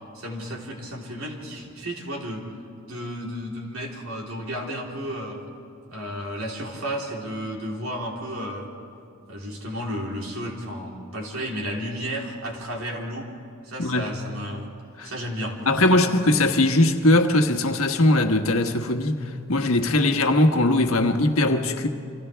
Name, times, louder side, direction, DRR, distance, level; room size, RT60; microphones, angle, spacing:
voice 1, 0.1-2.4 2.9-5.4 5.9-8.7 9.3-13.3 13.6-14.7 15.0-16.0, equal, 90° right, 3.7 m, -33 dB
voice 2, 13.8-14.1 15.0-15.1 15.7-19.2 19.5-21.9, left 2 dB, 85° left, 1.4 m, -20 dB
29.5 x 25.5 x 3.5 m
head